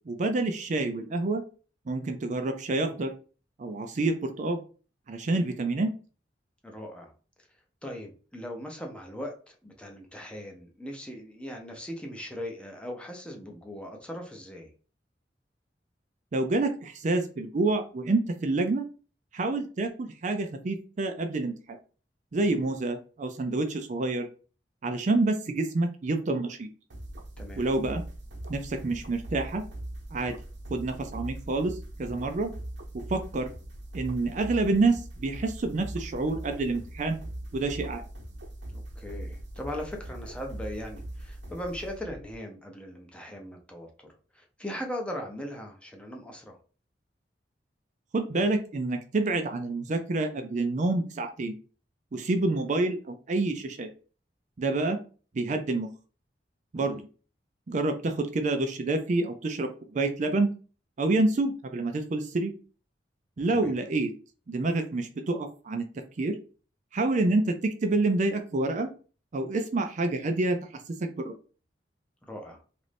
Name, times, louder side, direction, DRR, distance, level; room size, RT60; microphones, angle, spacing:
voice 1, 0.1-1.4 1.9-3.1 3.6-4.6 5.1-5.9 16.3-18.8 19.3-21.8 22.3-24.3 24.8-26.7 27.6-28.0 28.5-29.6 30.1-30.4 30.7-32.5 32.9-33.5 33.9-37.2 37.5-38.0 48.1-51.6 52.1-53.9 54.6-55.0 55.3-55.9 56.7-57.1 57.7-60.5 61.0-62.5 63.4-64.1 64.5-65.9 66.2-66.4 66.9-68.9 69.3-71.3, right 2 dB, 45° right, 6 dB, 0.4 m, -28 dB
voice 2, 6.6-7.1 7.8-14.7 22.6-22.7 27.4-27.6 38.7-44.1 44.3-46.6 56.7-57.0 63.5-63.7 72.2-72.6, equal, 5° left, 2 dB, 0.6 m, -39 dB
sound 1, 26.9-42.4, right 1 dB, 85° right, 0.9 m, -41 dB
3.1 x 2.5 x 3.3 m, 0.37 s
head